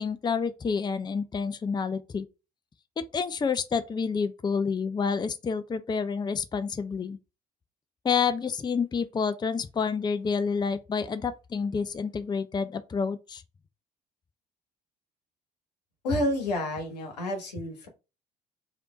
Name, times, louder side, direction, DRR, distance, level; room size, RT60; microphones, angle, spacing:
voice 1, 0.0-2.3 3.0-7.2 8.0-13.4, left 5 dB, 20° left, 0.5 m, -29 dB
voice 2, 16.0-17.9, left 1 dB, 85° left, 1.1 m, -29 dB
3.3 x 2.7 x 4.6 m
hypercardioid pair, 60°, 20 cm